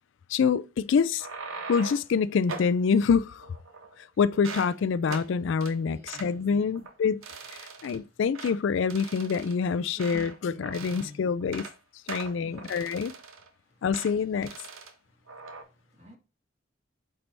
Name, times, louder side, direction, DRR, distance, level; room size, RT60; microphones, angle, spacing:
voice 1, 0.3-1.3 1.7-3.5 4.2-7.2 7.5-11.7 12.1-13.1 13.8-14.6, left 6 dB, 70° left, 0.3 m, -26 dB
sound 1, 1.0-2.1 2.5-2.8 3.4-4.0 4.3-4.7 5.1-5.3 5.6-5.7 6.1-6.3 6.7-6.9 7.2-8.0 8.3-8.6 8.9-10.4 10.6-11.1 11.4-11.7 12.1-13.5 13.9-14.1 14.4-14.9 15.3-15.6, right 4 dB, 90° right, 1.1 m, -41 dB
voice 2, 5.9-6.9 7.7-8.2 9.9-10.1 10.4-11.3 12.2-12.8 13.6-13.9 15.0-16.2, left 2 dB, 30° right, 1.9 m, -51 dB
8.0 x 4.5 x 3.3 m
head